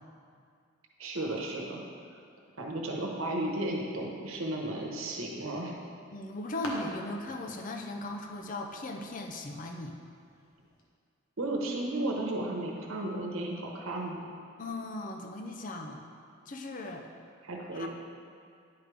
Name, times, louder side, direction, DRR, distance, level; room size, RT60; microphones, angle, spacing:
voice 1, 1.0-1.8 2.6-5.7 11.4-14.2 17.4-17.9, right 1 dB, 85° right, -1 dB, 1.1 m, -34 dB
sound 1, 5.7-10.8, left 1 dB, 75° left, 1.1 m, -48 dB
voice 2, 6.1-10.0 14.6-16.0 16.5-17.1 17.7-17.9, left 2 dB, 40° left, 3 dB, 0.5 m, -38 dB
10.5 x 5.0 x 3.4 m, 2.3 s
head